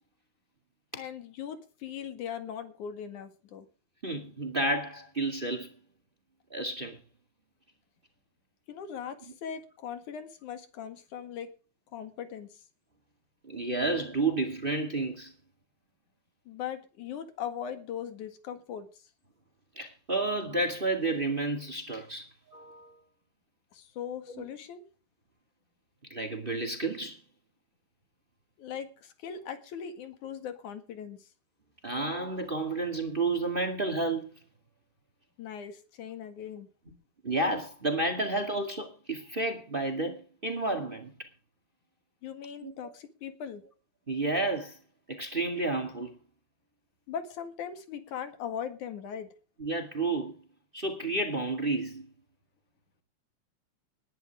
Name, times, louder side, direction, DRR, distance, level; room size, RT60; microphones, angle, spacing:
voice 1, 0.9-3.7 8.7-11.5 11.9-12.6 16.5-19.0 23.7-24.8 28.6-31.3 35.4-36.7 42.2-43.6 47.1-49.3, left 8 dB, 90° left, 3.3 m, -39 dB
voice 2, 4.0-5.7 6.5-7.0 13.4-15.3 19.8-23.0 24.4-24.5 26.1-27.2 31.8-34.4 37.2-41.1 42.6-42.7 44.1-44.8 45.1-46.2 49.6-50.3 50.7-52.1, right 2 dB, 20° right, 2.0 m, -31 dB
20.0 x 10.5 x 3.5 m
omnidirectional pair, 3.4 m